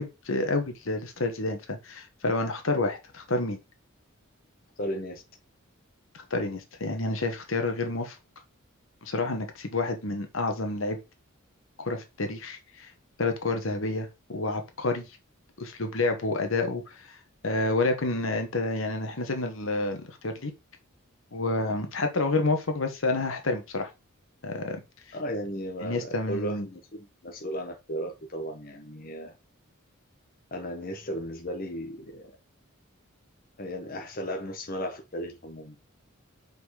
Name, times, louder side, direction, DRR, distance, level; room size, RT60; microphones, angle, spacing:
voice 1, 0.0-3.6 6.1-8.2 9.0-11.0 11.8-12.9 13.2-15.1 15.6-17.2 17.4-20.5 21.3-23.9 24.4-24.8 25.8-26.7, left 2 dB, 70° left, 1.2 m, -29 dB
voice 2, 4.8-5.2 25.1-29.3 30.5-32.3 33.6-35.8, equal, 45° left, 1.1 m, -35 dB
5.3 x 4.1 x 4.8 m
head